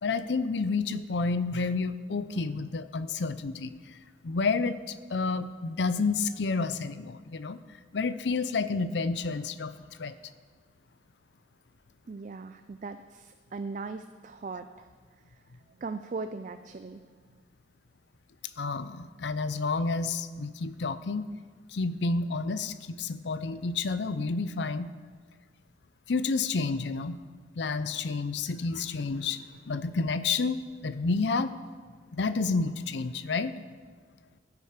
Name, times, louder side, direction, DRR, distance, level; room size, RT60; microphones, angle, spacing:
voice 1, 0.0-3.7 4.2-7.6 7.9-9.7 10.0-10.2 18.6-21.2 21.7-24.9 26.1-27.2 27.6-31.5 32.1-33.5, left 4 dB, 75° left, 13 dB, 0.6 m, -30 dB
voice 2, 12.1-14.9 15.2-15.4 15.7-17.4, right 4 dB, 45° right, 9 dB, 0.4 m, -39 dB
14.0 x 8.3 x 5.1 m, 1.5 s
head